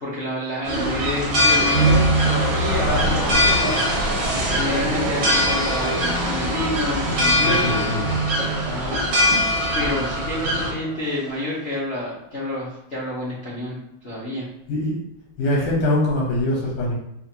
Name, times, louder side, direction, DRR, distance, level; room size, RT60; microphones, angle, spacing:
voice 1, 0.0-7.7 8.6-9.0 9.7-13.8 14.0-14.5, left 1 dB, 55° left, -9 dB, 0.7 m, -29 dB
sound 1, 0.6-10.7, left 1 dB, 65° right, 0.8 m, -22 dB
sound 2, 1.6-11.8, right 5 dB, 90° right, 1.5 m, -28 dB
voice 2, 7.4-8.1 14.7-15.0 15.4-16.9, left 1 dB, 85° left, -4 dB, 1.8 m, -23 dB
4.1 x 2.4 x 2.8 m, 0.82 s
omnidirectional pair, 2.3 m